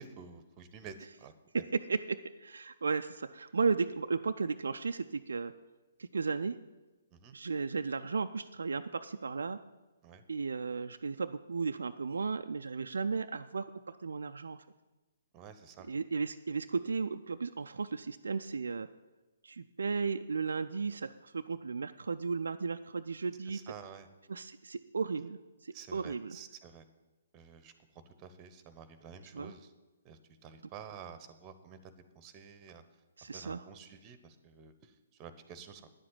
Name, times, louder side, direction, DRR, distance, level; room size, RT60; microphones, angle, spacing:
voice 1, 0.0-1.3 7.1-7.4 10.0-10.2 15.3-15.9 23.5-24.1 25.7-26.9 27.3-27.7 28.2-29.7 30.0-32.8 33.3-34.9 35.2-35.8, right 7 dB, 25° right, 12 dB, 1.0 m, -50 dB
voice 2, 1.5-5.5 6.0-6.6 7.3-9.6 10.3-14.6 15.9-18.9 19.4-23.7 24.3-26.4 29.3-29.5 33.2-33.6, right 4 dB, 65° right, 8 dB, 0.4 m, -35 dB
10.0 x 7.7 x 8.9 m, 1.1 s
figure-of-eight pair, 125°, 0 cm